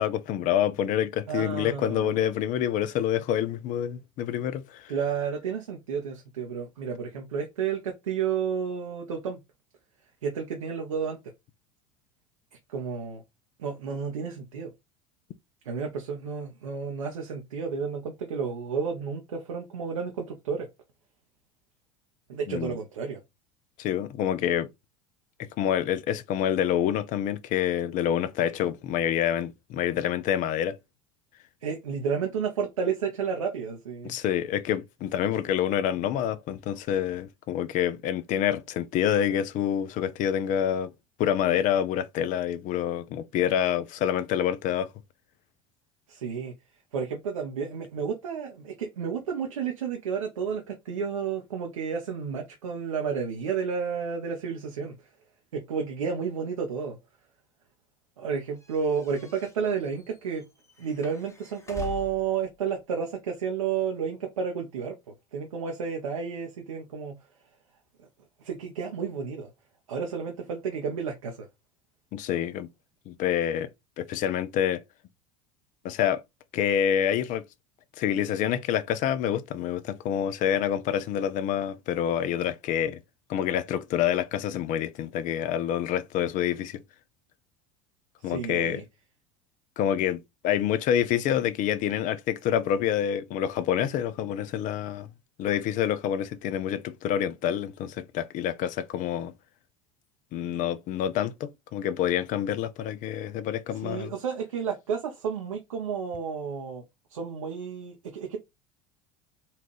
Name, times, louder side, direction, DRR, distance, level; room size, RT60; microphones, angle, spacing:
voice 1, 0.0-4.9 22.5-22.8 23.8-24.7 25.4-30.8 34.0-40.9 41.2-44.9 72.1-72.7 73.1-73.7 74.0-74.8 75.8-76.2 76.5-77.4 78.0-83.0 83.3-86.8 88.2-88.8 89.8-95.1 95.4-99.3 100.3-104.1, left 10 dB, 50° left, 0.6 m, -27 dB
voice 2, 1.3-2.2 4.9-9.4 10.2-11.2 12.7-13.2 13.6-14.7 15.6-20.7 22.3-23.2 31.6-34.2 46.1-46.5 46.9-55.0 55.5-57.0 58.2-60.4 60.8-65.0 65.3-67.2 68.4-69.5 69.9-71.5 88.2-88.8 103.8-106.8 107.1-108.4, right 6 dB, 85° right, 0.8 m, -31 dB
sound 1, 58.6-62.4, left 6 dB, 15° left, 1.1 m, -43 dB
4.2 x 2.5 x 3.0 m
hypercardioid pair, 75°, 17 cm